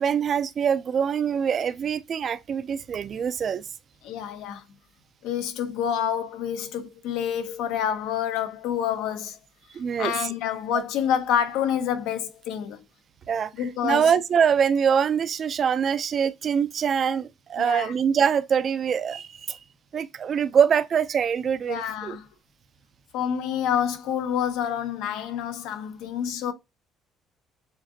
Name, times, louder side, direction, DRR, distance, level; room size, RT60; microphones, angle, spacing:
voice 1, 0.0-3.6 9.7-10.1 13.3-13.5 13.8-19.6 19.9-22.2, right 7 dB, 35° right, 0.3 m, -24 dB
voice 2, 4.0-4.6 5.2-9.4 10.0-12.8 13.6-14.1 17.6-17.9 21.7-22.3 23.1-26.5, left 9 dB, 90° left, 0.7 m, -28 dB
7.1 x 2.4 x 2.7 m
cardioid pair, 170°, 0 cm